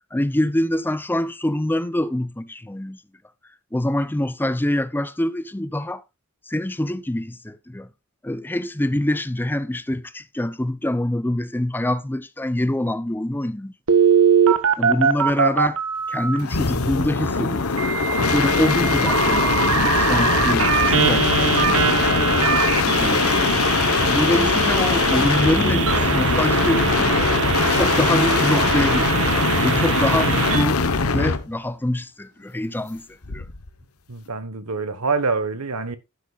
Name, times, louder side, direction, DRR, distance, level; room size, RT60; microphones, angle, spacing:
voice 1, 0.1-3.0 3.7-6.0 6.5-7.9 8.2-13.7 14.8-15.8 16.1-17.7 18.2-22.4 23.0-23.6 24.0-27.3 27.7-29.2 29.6-30.8 31.1-33.5, left 1 dB, 10° left, 0.5 m, -25 dB
Telephone, 13.9-16.4 17.8-30.6, right 6 dB, 65° right, 1.4 m, -22 dB
sound 1, 16.4-31.5 33.2-33.7, left 4 dB, 75° left, 1.2 m, -21 dB
voice 2, 34.1-36.0, right 4 dB, 85° right, 1.4 m, -25 dB
11.5 x 10.5 x 2.5 m
head